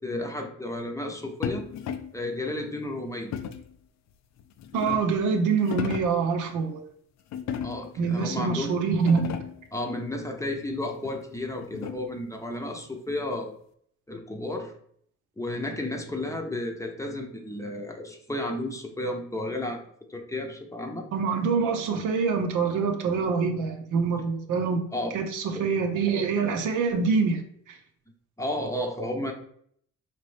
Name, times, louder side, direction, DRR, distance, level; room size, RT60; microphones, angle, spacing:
voice 1, 0.0-1.6 2.1-3.3 7.6-8.8 9.7-13.5 14.1-14.7 15.4-19.8 20.1-21.1 24.9-25.2 25.5-25.6 28.4-29.3, left 1 dB, 10° left, 2 dB, 0.7 m, -32 dB
sound 1, 1.4-2.2 3.3-3.8 4.4-5.2 5.6-6.2 7.3-8.0 8.6-8.7 8.9-9.7 11.0-12.2, left 8 dB, 65° left, 0.5 m, -35 dB
voice 2, 4.7-6.8 8.0-9.3 21.1-24.8 25.1-27.4, right 5 dB, 80° right, 4 dB, 0.7 m, -25 dB
4.0 x 2.9 x 3.2 m, 0.65 s
cardioid pair, 90°, 30 cm